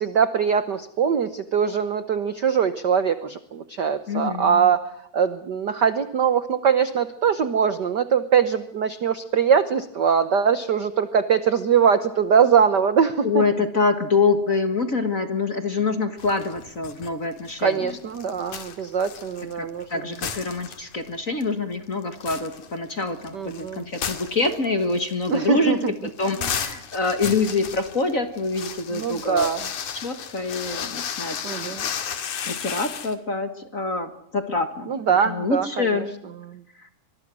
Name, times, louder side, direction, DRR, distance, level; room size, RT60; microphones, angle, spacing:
voice 1, 0.0-4.8 5.1-13.4 17.6-20.1 23.3-23.9 25.3-25.9 28.9-29.7 31.4-31.8 34.9-36.0 36.5-36.6, right 7 dB, 75° right, 12 dB, 0.9 m, -22 dB
voice 2, 4.1-4.7 13.2-17.9 19.6-25.8 26.2-29.5 29.9-31.4 32.4-36.1 36.8-36.9, left 3 dB, 35° left, 9 dB, 1.4 m, -25 dB
sound 1, 16.2-17.1 17.4-19.8 20.1-21.1 21.4-21.5 21.9-33.1, left 8 dB, 80° left, 3.5 m, -34 dB
24.5 x 22.5 x 6.2 m, 0.75 s
omnidirectional pair, 3.4 m